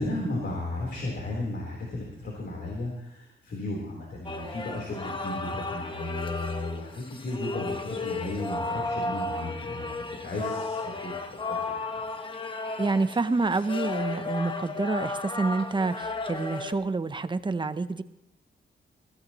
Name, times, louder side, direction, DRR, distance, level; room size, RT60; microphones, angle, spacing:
voice 1, 0.0-11.4 11.9-12.0, left 2 dB, 60° left, -2 dB, 3.8 m, -34 dB
sound 1, 4.2-16.7, left 3 dB, 25° left, 1.2 m, -34 dB
voice 2, 12.8-18.0, right 3 dB, 25° right, 11 dB, 0.7 m, -28 dB
22.0 x 16.5 x 3.0 m, 0.85 s
wide cardioid pair, 135°, 20 cm